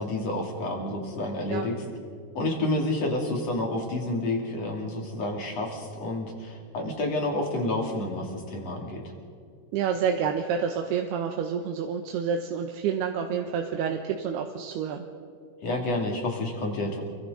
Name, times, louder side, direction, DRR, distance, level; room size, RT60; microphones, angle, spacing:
voice 1, 0.0-1.9 2.4-9.1 15.6-17.0, left 1 dB, 45° left, 1 dB, 3.6 m, -29 dB
voice 2, 9.7-15.1, right 7 dB, 80° right, 3 dB, 3.0 m, -28 dB
29.0 x 24.0 x 4.0 m, 2.3 s
omnidirectional pair, 4.7 m